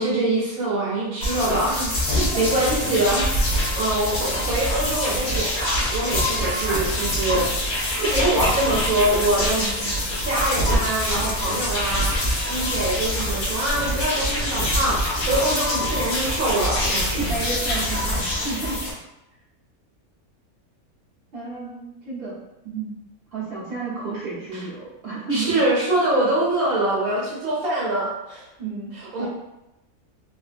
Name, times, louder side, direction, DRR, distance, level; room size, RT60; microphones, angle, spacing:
voice 1, 0.0-7.5 8.0-9.6 10.2-12.1 12.4-17.3 24.5-24.6 25.3-28.5 28.9-29.3, right 1 dB, 70° right, -6 dB, 1.4 m, -24 dB
sound 1, 1.2-18.9, left 1 dB, 50° left, 1.1 m, -25 dB
voice 2, 2.1-2.8 9.6-9.9 17.1-18.9 21.3-22.4 22.6-22.9 23.3-25.5 28.6-28.9 29.2-29.3, right 3 dB, 45° right, -7 dB, 1.1 m, -31 dB
3.4 x 2.7 x 2.5 m, 0.91 s
omnidirectional pair, 1.6 m